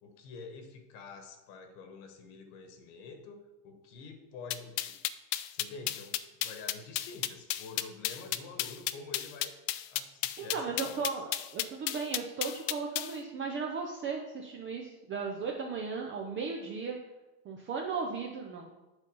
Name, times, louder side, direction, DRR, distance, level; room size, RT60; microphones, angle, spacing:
voice 1, 0.0-5.0 5.5-9.5 9.9-11.2, left 4 dB, 55° left, 6 dB, 1.4 m, -47 dB
sound 1, 4.5-13.1, left 15 dB, 80° left, 0.6 m, -33 dB
voice 2, 10.4-17.0 17.4-18.7, right 5 dB, 25° right, 1 dB, 0.6 m, -36 dB
8.1 x 4.1 x 5.3 m, 1.1 s
supercardioid pair, 140°, 49 cm